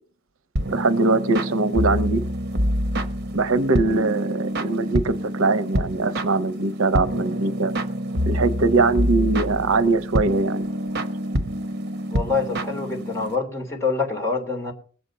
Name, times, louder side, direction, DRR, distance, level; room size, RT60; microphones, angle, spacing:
sound 1, 0.6-13.4, equal, 55° right, 1.0 m, -26 dB
voice 1, 0.7-2.2 3.3-7.7 8.3-10.7, right 3 dB, 80° right, 0.7 m, -22 dB
voice 2, 12.1-14.7, left 4 dB, 15° left, 2.9 m, -26 dB
21.5 x 8.0 x 4.1 m
head